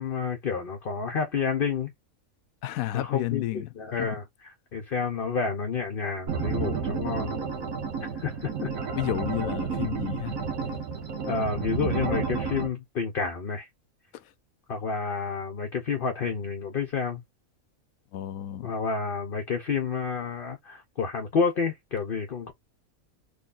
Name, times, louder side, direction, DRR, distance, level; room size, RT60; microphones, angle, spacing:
voice 1, 0.0-1.9 2.9-4.2 4.7-7.4 8.1-8.7 11.3-13.7 14.7-17.2 18.6-22.5, left 5 dB, 50° left, 0.8 m, -29 dB
voice 2, 2.6-3.7 4.0-4.1 8.9-10.4 10.6-10.8 14.1-14.2 18.1-18.7, left 14 dB, 80° left, 1.0 m, -32 dB
sound 1, 6.3-12.7, right 5 dB, 75° right, 1.5 m, -31 dB
3.9 x 3.0 x 2.5 m
omnidirectional pair, 1.4 m